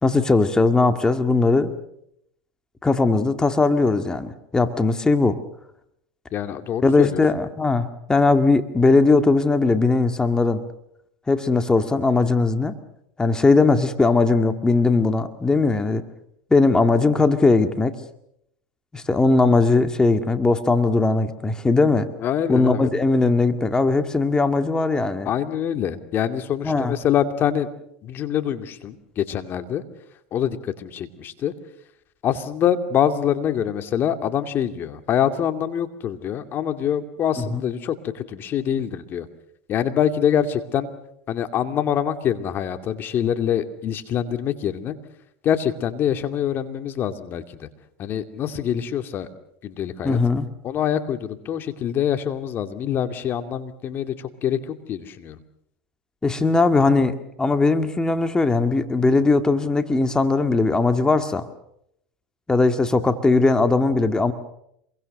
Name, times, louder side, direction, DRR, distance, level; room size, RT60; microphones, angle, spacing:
voice 1, 0.0-1.7 2.8-5.4 6.8-10.6 11.3-12.7 13.2-16.0 16.5-18.0 18.9-22.1 22.5-25.3 26.6-26.9 37.5-37.6 50.0-50.5 56.2-61.5 62.5-64.3, left 3 dB, 15° left, 8 dB, 2.1 m, -19 dB
voice 2, 6.3-7.2 22.2-22.9 25.3-27.7 28.0-29.8 30.3-31.5 32.2-39.3 39.7-40.9 41.3-44.9 45.4-47.7 48.0-49.3 49.6-50.2 50.6-55.4, left 9 dB, 45° left, 8 dB, 2.4 m, -25 dB
27.0 x 23.0 x 6.6 m, 0.74 s
hypercardioid pair, 95°, 5 cm